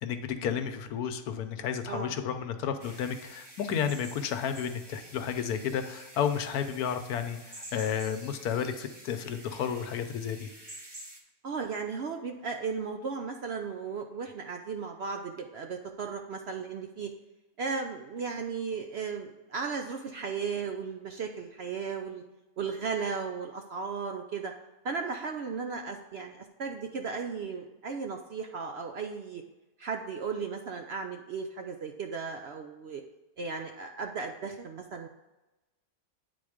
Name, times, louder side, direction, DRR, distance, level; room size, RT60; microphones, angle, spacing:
voice 1, 0.0-7.4 7.7-10.5, left 8 dB, 85° left, 8 dB, 1.2 m, -32 dB
sound 1, 2.8-11.2, right 1 dB, 20° right, 0.8 m, -49 dB
voice 2, 11.4-17.1 17.6-22.2 22.6-24.5 24.8-29.4 29.8-33.0 33.4-35.1, right 5 dB, 65° right, 4 dB, 0.6 m, -35 dB
9.2 x 4.0 x 4.9 m, 1.1 s
omnidirectional pair, 1.6 m